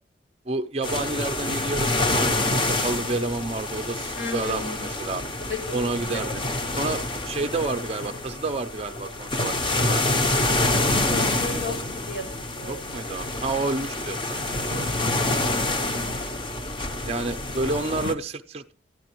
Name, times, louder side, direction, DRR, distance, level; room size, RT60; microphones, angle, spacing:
voice 1, 0.5-5.2 5.7-6.5 6.8-10.1 12.7-15.0 17.1-18.7, right 3 dB, 30° right, 8 dB, 0.5 m, -30 dB
sound 1, 0.8-18.1, left 2 dB, 25° left, 0.7 m, -27 dB
voice 2, 4.2-4.9 5.5-5.6 5.9-6.2 11.1-12.8 15.2-15.4, left 3 dB, 75° left, 5 dB, 1.9 m, -34 dB
12.0 x 10.0 x 3.0 m, 0.40 s
head